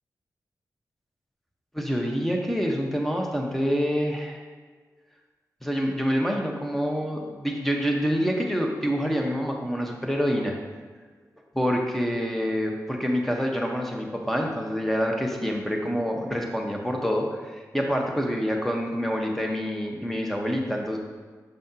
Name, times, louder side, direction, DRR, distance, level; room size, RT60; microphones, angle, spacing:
voice 1, 1.7-4.4 5.6-10.5 11.5-21.0, equal, 5° left, 1 dB, 1.2 m, -27 dB
6.7 x 5.5 x 2.9 m, 1.5 s
cardioid pair, 45°, 7 cm